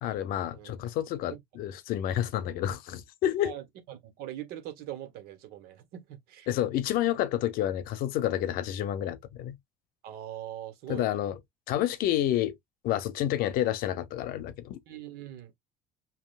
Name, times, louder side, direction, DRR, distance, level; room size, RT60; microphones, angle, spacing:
voice 1, 0.0-3.5 6.5-9.6 10.9-11.4 11.7-12.6 12.8-14.8, left 12 dB, 60° left, 0.7 m, -29 dB
voice 2, 3.4-6.5 10.0-11.2 14.9-15.6, right 12 dB, 70° right, 1.5 m, -42 dB
5.5 x 2.8 x 2.4 m
cardioid pair, 130°, 16 cm